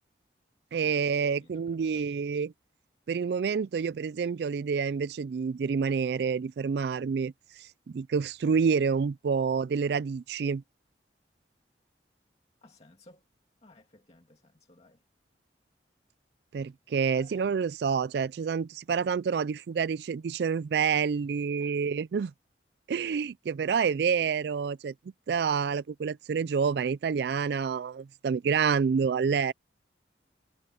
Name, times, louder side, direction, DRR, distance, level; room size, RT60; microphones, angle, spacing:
voice 1, 0.7-2.5 3.1-7.3 7.9-10.6 16.5-22.3 22.9-24.9 25.3-29.5, right 6 dB, 65° right, 0.3 m, -28 dB
voice 2, 1.3-2.0 12.6-13.3 13.6-15.0 17.1-17.6 21.6-21.9, left 2 dB, 35° left, 2.2 m, -58 dB
head